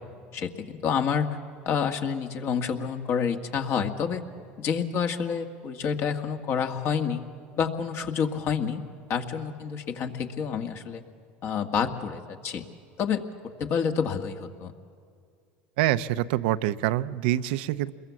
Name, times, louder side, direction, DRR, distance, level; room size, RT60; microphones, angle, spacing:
voice 1, 0.3-1.4 1.7-4.2 4.6-7.2 7.6-8.8 9.1-11.0 11.4-12.6 13.0-13.2 13.6-14.7, left 7 dB, 50° left, 5 dB, 1.9 m, -28 dB
voice 2, 15.8-17.9, right 14 dB, 80° right, 14 dB, 0.7 m, -26 dB
27.5 x 22.0 x 7.2 m, 2.3 s
supercardioid pair, 100°, 5 cm